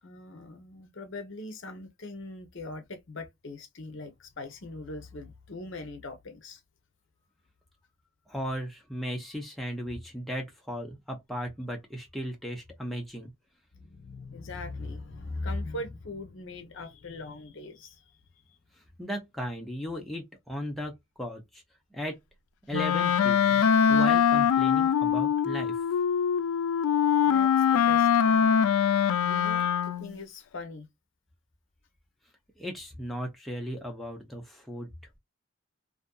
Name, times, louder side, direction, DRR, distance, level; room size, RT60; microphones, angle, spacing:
voice 1, 0.0-6.6 13.7-18.0 27.2-28.6 29.2-30.9, left 2 dB, 60° left, 0.7 m, -40 dB
voice 2, 8.3-13.3 18.8-21.6 21.9-22.2 22.7-23.6 23.9-25.8 32.6-34.9, equal, ahead, 0.5 m, -36 dB
Wind instrument woodwind instrument, 22.7-30.2, left 8 dB, 80° left, 0.3 m, -23 dB
2.5 x 2.5 x 2.2 m
head